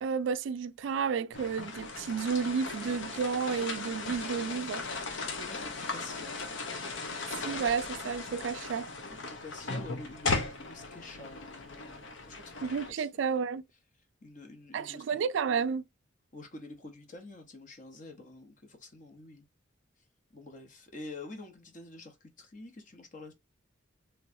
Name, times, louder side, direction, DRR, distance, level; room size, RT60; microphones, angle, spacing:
voice 1, 0.0-4.8 7.4-8.9 12.6-13.6 14.7-15.8, right 6 dB, 75° right, 0.3 m, -31 dB
sound 1, 1.3-12.9, left 3 dB, 75° left, 0.8 m, -37 dB
voice 2, 5.3-6.3 9.1-13.3 14.2-15.2 16.3-19.5 20.3-23.3, left 2 dB, 40° left, 0.9 m, -48 dB
3.4 x 3.0 x 2.6 m
head